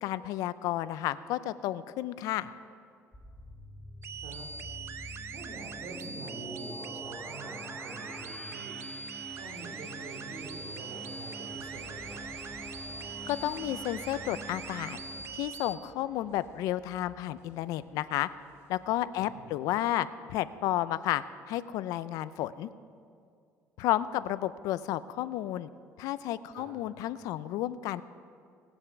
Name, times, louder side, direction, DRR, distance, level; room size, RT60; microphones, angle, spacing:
voice 1, 0.0-2.5 13.3-15.0 15.3-18.3 18.7-22.7 23.8-25.7 26.0-28.0, left 13 dB, 80° left, 15 dB, 0.5 m, -32 dB
sound 1, 3.1-15.2, left 1 dB, 10° left, 1.0 m, -46 dB
sound 2, 4.0-15.8, right 6 dB, 45° right, 0.6 m, -42 dB
voice 2, 5.3-8.8 9.4-12.2 19.2-19.5 26.5-26.7, right 3 dB, 70° right, 1 dB, 2.6 m, -46 dB
sound 3, 11.7-19.9, left 2 dB, 50° left, 2.1 m, -57 dB
18.5 x 7.8 x 6.0 m, 2.3 s
cardioid pair, 125°, 6 cm